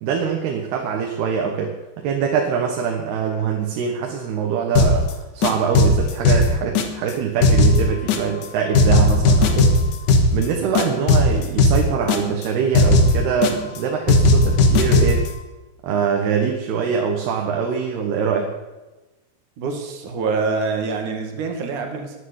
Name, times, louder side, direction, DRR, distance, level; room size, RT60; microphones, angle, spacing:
voice 1, 0.0-9.7 10.3-15.3 15.8-18.5, right 6 dB, 80° right, 1 dB, 3.5 m, -23 dB
sound 1, 4.8-5.1 5.4-7.1 7.4-8.5 8.7-10.5 10.8-12.5 12.7-13.8 14.1-15.3, left 2 dB, 60° left, 2.6 m, -16 dB
voice 2, 19.6-22.2, right 4 dB, 55° right, 4 dB, 3.2 m, -25 dB
13.0 x 9.8 x 9.5 m, 1.1 s
omnidirectional pair, 4.5 m